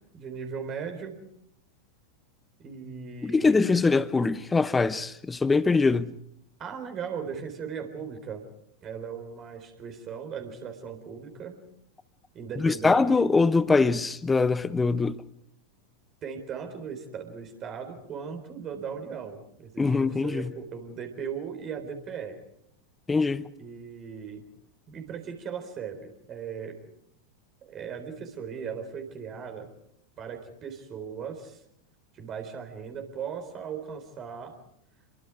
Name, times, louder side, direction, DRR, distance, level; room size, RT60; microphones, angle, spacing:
voice 1, 0.1-1.2 2.6-3.6 6.6-8.4 8.8-11.6 12.3-13.2 16.2-22.4 23.6-24.5 24.9-26.8 27.6-29.7 30.2-31.6 32.1-34.6, right 6 dB, 30° right, 4.0 m, -38 dB
voice 2, 3.2-6.1 12.6-15.2 19.8-20.5 23.1-23.5, left 4 dB, 10° left, 0.9 m, -23 dB
29.0 x 23.0 x 4.8 m
figure-of-eight pair, 90°, 0 cm